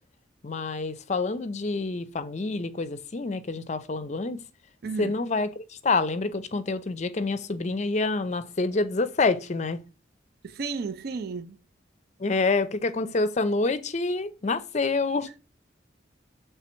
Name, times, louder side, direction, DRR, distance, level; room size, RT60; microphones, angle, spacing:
voice 1, 0.4-4.4 5.0-9.8 12.2-15.3, left 3 dB, 40° left, 0.5 m, -27 dB
voice 2, 4.8-5.2 10.4-11.6, right 4 dB, 55° right, 0.4 m, -33 dB
7.1 x 3.4 x 4.4 m
head